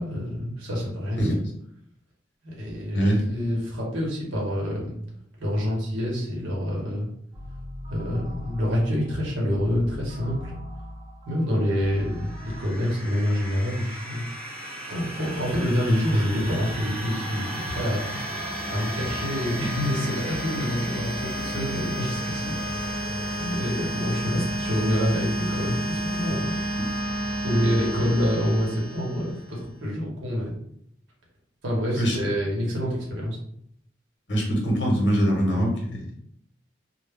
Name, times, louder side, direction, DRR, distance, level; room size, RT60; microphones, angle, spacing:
voice 1, 0.0-1.4 2.4-5.0 5.4-7.1 7.9-10.5 11.2-14.2 14.9-18.2 18.7-26.6 27.4-30.6 31.6-33.4, equal, 90° right, -3 dB, 0.9 m, -27 dB
voice 2, 2.9-3.3 32.0-32.3 34.3-36.1, equal, 65° left, -1 dB, 0.9 m, -23 dB
sound 1, 7.3-12.6, left 1 dB, 30° right, 0.7 m, -39 dB
sound 2, 11.9-29.5, right 1 dB, 5° left, 0.7 m, -32 dB
2.2 x 2.0 x 3.4 m, 0.70 s
head